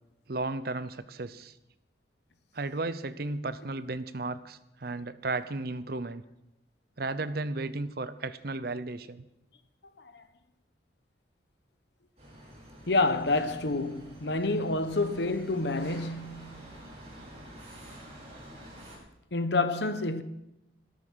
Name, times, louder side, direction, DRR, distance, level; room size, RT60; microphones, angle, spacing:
voice 1, 0.3-1.5 2.5-6.2 7.0-9.3, right 2 dB, 55° right, 0.7 m, -34 dB
sound 1, 12.2-19.0, right 1 dB, 35° right, 5.7 m, -48 dB
voice 2, 12.9-16.7 19.3-20.2, left 2 dB, 65° left, 1.0 m, -28 dB
13.5 x 12.5 x 6.3 m
head